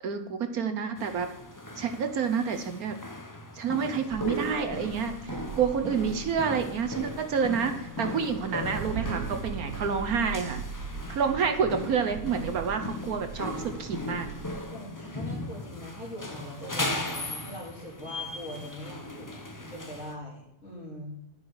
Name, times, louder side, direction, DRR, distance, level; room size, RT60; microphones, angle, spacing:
voice 1, 0.0-1.3 1.8-3.0 3.5-10.6 11.1-14.3, right 6 dB, 65° right, 7 dB, 1.3 m, -29 dB
sound 1, 1.0-20.1, left 2 dB, 15° left, 0.7 m, -38 dB
sound 2, 4.1-14.6, right 7 dB, 85° right, 1.5 m, -40 dB
voice 2, 14.7-21.1, equal, 45° left, -9 dB, 3.5 m, -42 dB
10.5 x 10.0 x 4.8 m, 0.83 s
omnidirectional pair, 1.8 m